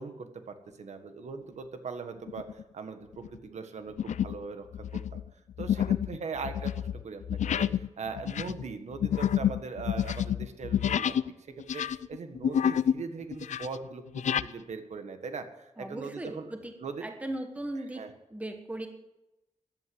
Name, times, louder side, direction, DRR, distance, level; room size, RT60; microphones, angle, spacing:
voice 1, 0.0-5.2 5.6-11.2 11.5-16.5 16.8-17.0 17.9-18.1, right 4 dB, 70° right, 7 dB, 1.6 m, -40 dB
sound 1, 2.3-2.6 3.1-3.4 4.0-4.4 4.7-11.3 11.6-13.0 13.3-14.5, left 9 dB, 85° left, 0.5 m, -29 dB
voice 2, 15.8-16.7 17.0-18.0 18.3-18.9, right 1 dB, 10° right, 5 dB, 1.5 m, -37 dB
14.5 x 11.0 x 7.8 m, 0.94 s
wide cardioid pair, 175°, 12 cm